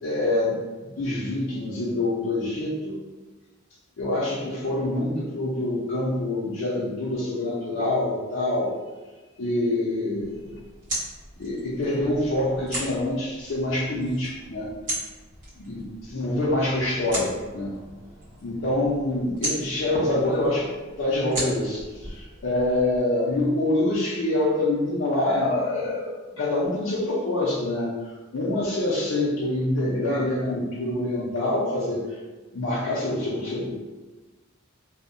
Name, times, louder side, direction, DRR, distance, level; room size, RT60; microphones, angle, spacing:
voice 1, 0.0-0.6 0.9-3.0 4.0-8.8 9.4-10.5 11.4-14.7 15.6-17.7 18.4-20.7 21.0-32.2 32.5-33.7, left 1 dB, 70° left, -7 dB, 0.5 m, -26 dB
sound 1, 10.2-23.0, right 1 dB, 40° right, 1.3 m, -37 dB
2.7 x 2.0 x 2.5 m, 1.2 s
head